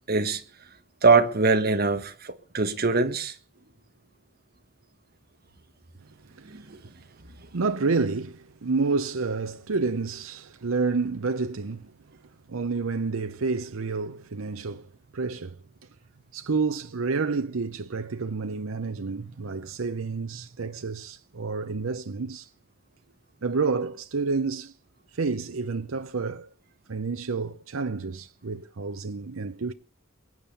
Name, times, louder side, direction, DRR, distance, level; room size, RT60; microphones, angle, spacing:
voice 1, 0.1-0.4 1.0-3.4 6.4-6.8, right 4 dB, 45° right, 1.5 m, -23 dB
voice 2, 6.3-6.7 7.5-11.9 12.5-15.6 16.3-22.5 23.4-24.7 25.1-26.5 26.9-29.7, right 4 dB, 85° right, 0.7 m, -29 dB
22.5 x 8.8 x 6.9 m
head